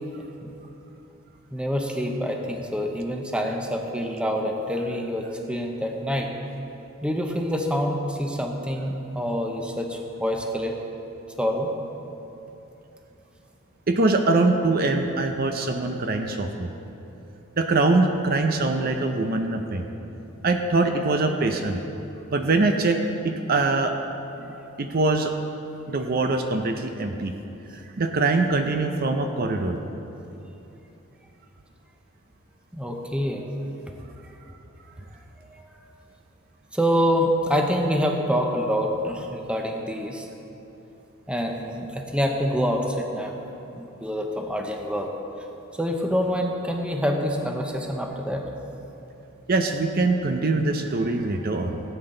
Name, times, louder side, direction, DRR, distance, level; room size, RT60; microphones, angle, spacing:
voice 1, 1.5-6.3 7.0-10.7 11.4-11.7 24.4-24.5 32.7-33.5 36.7-40.3 41.3-43.3 43.8-45.1 45.8-48.4, equal, 5° right, 2 dB, 0.8 m, -26 dB
voice 2, 13.9-16.7 17.6-19.9 20.4-21.8 22.3-23.0 23.2-23.9 24.8-25.3 25.9-27.3 27.7-29.8 49.5-51.8, right 3 dB, 45° right, 5 dB, 0.6 m, -23 dB
17.0 x 8.8 x 3.8 m, 3.0 s
head